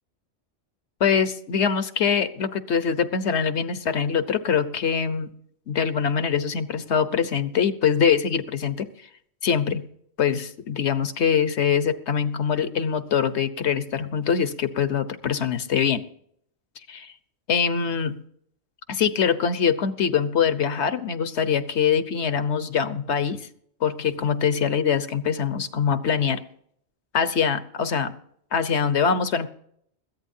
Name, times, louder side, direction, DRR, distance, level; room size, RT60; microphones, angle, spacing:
voice 1, 1.0-5.3 5.7-8.9 9.4-9.9 10.2-16.0 16.9-17.1 17.5-18.2 18.9-23.5 23.8-26.4 27.1-28.1 28.5-29.5, left 7 dB, 80° left, 12 dB, 1.3 m, -23 dB
21.0 x 14.5 x 2.7 m, 0.66 s
omnidirectional pair, 1.1 m